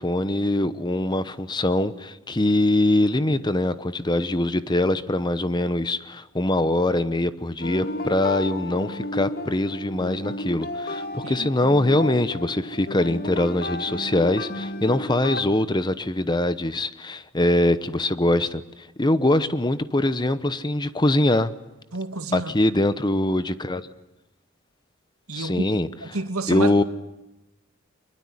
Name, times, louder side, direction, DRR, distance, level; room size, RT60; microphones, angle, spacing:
voice 1, 0.0-21.5 22.3-23.9 25.3-25.9 26.5-26.8, left 1 dB, 20° left, 0.9 m, -23 dB
sound 1, 7.6-15.4, left 1 dB, 45° left, 2.0 m, -32 dB
voice 2, 21.9-22.5 25.3-25.7 26.0-26.7, right 3 dB, 90° right, 2.3 m, -29 dB
23.5 x 22.0 x 10.0 m
head